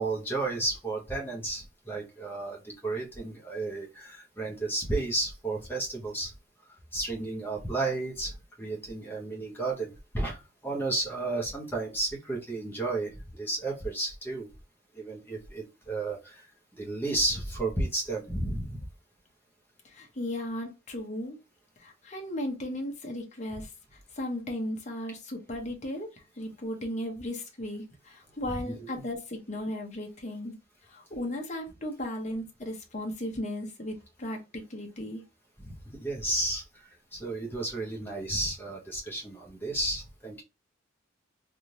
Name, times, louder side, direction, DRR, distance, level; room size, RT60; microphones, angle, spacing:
voice 1, 0.0-6.3 6.9-14.5 14.9-16.5 16.7-18.8 28.5-29.0 35.6-35.7 36.0-36.6 37.1-40.4, right 2 dB, 10° left, 1.1 m, -32 dB
voice 2, 19.8-21.4 21.8-30.6 30.9-35.2, left 1 dB, 35° left, 0.9 m, -36 dB
3.5 x 2.6 x 2.9 m
head